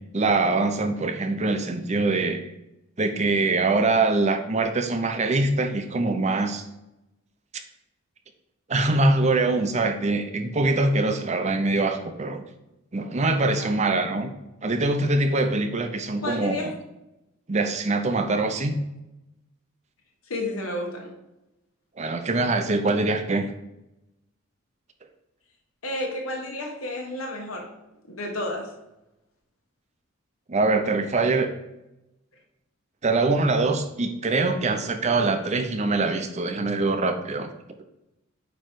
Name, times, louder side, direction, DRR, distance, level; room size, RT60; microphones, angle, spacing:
voice 1, 0.1-2.4 3.0-6.6 8.7-12.4 12.9-14.3 14.6-16.6 17.5-18.8 22.0-23.5 30.5-31.5 33.0-37.5, right 3 dB, 35° right, 7 dB, 0.6 m, -23 dB
voice 2, 13.4-13.8 16.2-16.7 20.3-21.1 25.8-27.8 28.1-28.7, left 1 dB, 90° left, 1 dB, 1.5 m, -31 dB
8.8 x 3.1 x 4.6 m, 0.92 s
head